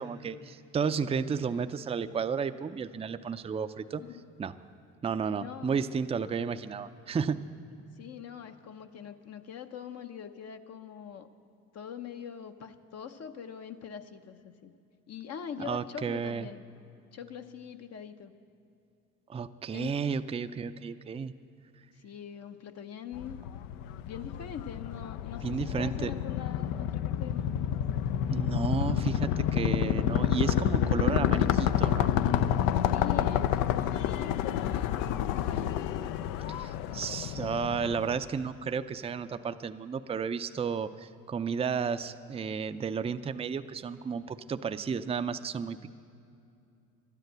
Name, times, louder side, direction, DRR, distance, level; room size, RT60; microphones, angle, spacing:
voice 1, 0.0-4.0 4.4-4.5 5.0-7.4 15.6-16.5 19.3-21.3 25.4-26.1 28.3-32.1 36.5-45.9, right 6 dB, 20° right, 11 dB, 0.4 m, -33 dB
voice 2, 5.4-5.8 8.0-11.3 11.7-14.7 15.1-16.6 17.1-18.3 19.7-20.0 21.9-23.4 24.0-27.6 32.9-35.7, left 8 dB, 55° left, 7 dB, 0.7 m, -43 dB
sound 1, 23.1-38.2, left 10 dB, 85° left, 0.5 m, -29 dB
12.0 x 10.5 x 7.8 m, 2.6 s
supercardioid pair, 80°, 31 cm